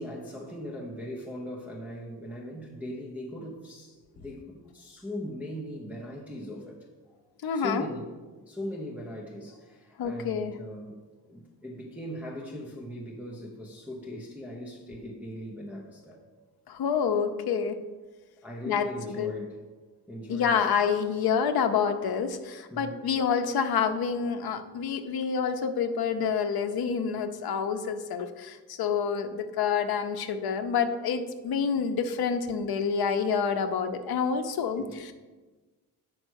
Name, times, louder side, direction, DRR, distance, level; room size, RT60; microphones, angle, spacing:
voice 1, 0.0-7.2 7.5-8.2 8.5-11.0 11.3-16.2 18.4-19.6 20.1-20.6 22.7-23.0 34.7-35.0, equal, 5° right, -4 dB, 0.8 m, -39 dB
voice 2, 7.4-7.9 10.0-10.5 16.7-17.8 18.7-19.3 20.3-35.1, left 6 dB, 65° left, 7 dB, 0.8 m, -28 dB
8.7 x 4.7 x 6.3 m, 1.3 s
wide cardioid pair, 180°, 39 cm